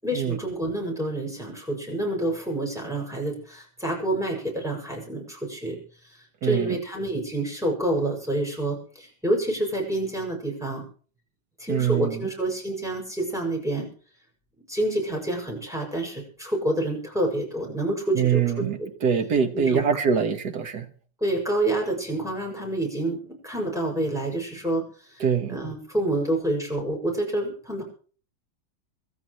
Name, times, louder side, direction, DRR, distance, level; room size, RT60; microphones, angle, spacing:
voice 1, 0.0-5.8 6.0-10.9 11.6-13.9 14.7-18.9 19.5-19.8 21.2-27.8, right 1 dB, ahead, 6.2 m, -28 dB
voice 2, 6.4-6.8 11.7-12.2 18.2-20.9 25.2-25.6, right 7 dB, 55° right, 1.9 m, -24 dB
26.5 x 13.5 x 3.1 m
omnidirectional pair, 2.1 m